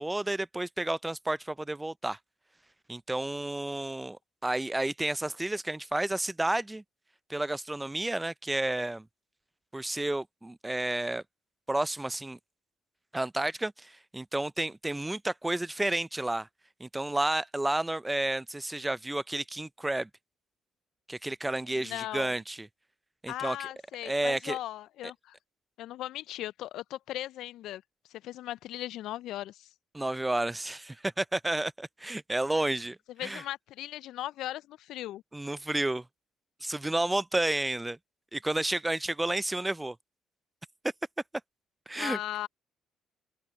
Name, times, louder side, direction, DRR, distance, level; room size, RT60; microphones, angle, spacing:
voice 1, 0.0-2.2 2.9-6.8 7.3-9.1 9.7-11.2 11.7-12.4 13.1-16.5 16.8-20.1 21.1-22.7 23.2-23.6 24.0-24.6 29.9-33.4 35.3-36.1 36.6-38.0 38.3-40.0 41.9-42.2, right 1 dB, 15° right, 0.5 m, -31 dB
voice 2, 21.7-22.4 23.3-25.4 25.8-27.8 28.1-29.7 33.2-35.2 42.0-42.5, left 14 dB, 75° left, 0.3 m, -38 dB
open air
hypercardioid pair, 55°, 0 cm